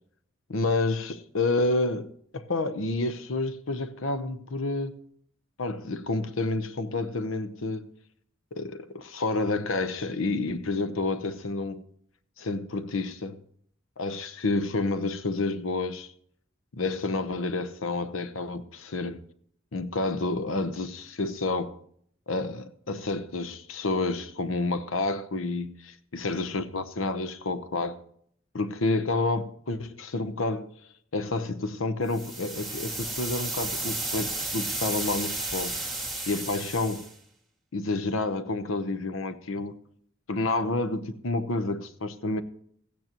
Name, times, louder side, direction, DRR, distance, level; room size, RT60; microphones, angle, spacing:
voice 1, 0.5-5.0 5.6-7.9 8.5-11.8 12.4-13.4 14.0-16.1 16.7-19.2 19.7-21.8 22.3-28.0 28.5-30.7 31.1-35.8 36.3-37.1 37.7-39.8 40.3-42.4, left 2 dB, 75° left, 0.8 m, -29 dB
sound 1, 32.1-37.1, right 2 dB, ahead, 2.0 m, -33 dB
15.5 x 9.3 x 3.0 m
head